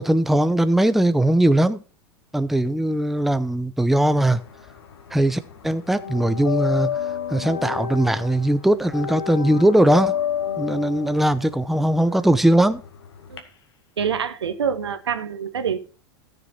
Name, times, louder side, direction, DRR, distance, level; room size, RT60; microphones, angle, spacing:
voice 1, 0.0-1.8 2.3-4.4 5.1-6.9 7.3-10.2 10.6-12.8, right 1 dB, ahead, 0.7 m, -20 dB
sound 1, 4.1-5.2 5.5-13.4, left 9 dB, 75° left, 2.1 m, -29 dB
voice 2, 14.0-15.8, right 7 dB, 85° right, 1.1 m, -26 dB
14.0 x 6.6 x 4.3 m
hypercardioid pair, 95°, 13 cm